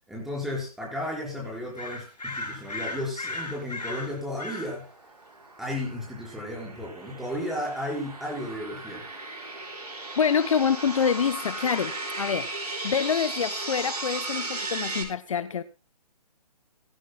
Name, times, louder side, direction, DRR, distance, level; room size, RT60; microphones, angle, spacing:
voice 1, 0.1-4.9 5.6-9.1, left 1 dB, ahead, 4.8 m, -34 dB
sound 1, 1.8-4.7, left 2 dB, 80° left, 4.9 m, -36 dB
sound 2, 4.2-15.0, right 2 dB, 75° right, 5.0 m, -36 dB
voice 2, 10.2-11.9 12.2-15.6, left 7 dB, 55° left, 0.7 m, -26 dB
19.0 x 16.0 x 2.3 m
figure-of-eight pair, 135°, 20 cm